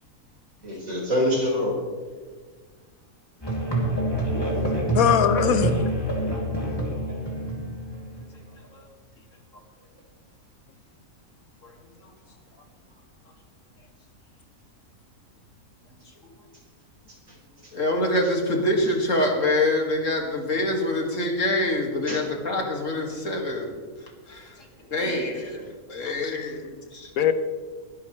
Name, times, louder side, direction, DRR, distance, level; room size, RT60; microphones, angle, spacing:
voice 1, 0.6-1.8 7.0-7.1 17.6-17.7 22.1-22.2 25.0-25.7, left 1 dB, 65° right, -4 dB, 5.3 m, -27 dB
Musical instrument, 3.4-8.2, right 1 dB, 15° left, 3.2 m, -26 dB
voice 2, 4.9-5.9 26.0-26.6 27.2-27.3, left 8 dB, 75° left, 10 dB, 1.2 m, -22 dB
voice 3, 17.7-23.7 24.3-24.5 24.9-27.1, left 1 dB, 60° left, 1 dB, 2.5 m, -25 dB
22.5 x 11.0 x 3.2 m, 1.6 s
omnidirectional pair, 1.5 m